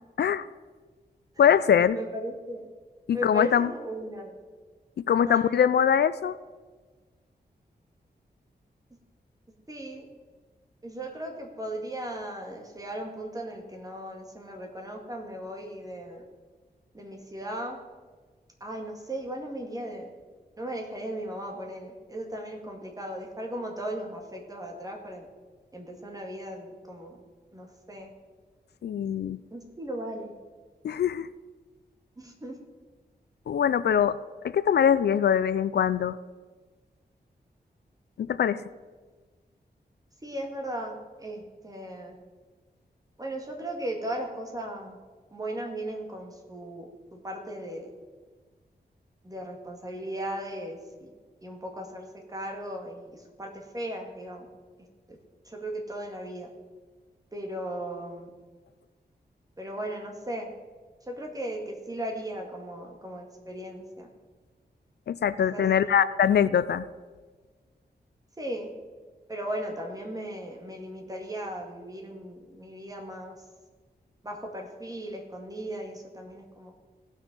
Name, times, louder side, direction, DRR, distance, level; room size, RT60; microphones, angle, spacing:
voice 1, 1.4-2.0 3.1-3.7 5.1-6.3 28.8-29.4 30.8-31.3 33.5-34.2 34.4-36.2 38.2-38.6 65.1-66.8, left 8 dB, 75° left, 16 dB, 0.4 m, -23 dB
voice 2, 1.9-2.6 3.1-4.3 5.3-5.5 9.7-10.1 10.8-16.2 16.9-17.8 18.6-20.1 20.6-25.3 25.7-27.2 27.5-28.1 29.5-30.3 32.2-32.6 40.2-42.2 43.2-45.0 45.3-47.9 49.2-51.1 51.4-54.5 55.1-55.2 55.5-56.5 57.3-58.3 59.6-60.5 61.1-64.1 65.5-65.9 68.4-68.7 69.3-73.4 74.2-76.7, right 1 dB, 20° right, 1 dB, 1.9 m, -37 dB
16.5 x 6.2 x 5.3 m, 1.4 s
wide cardioid pair, 135°, 17 cm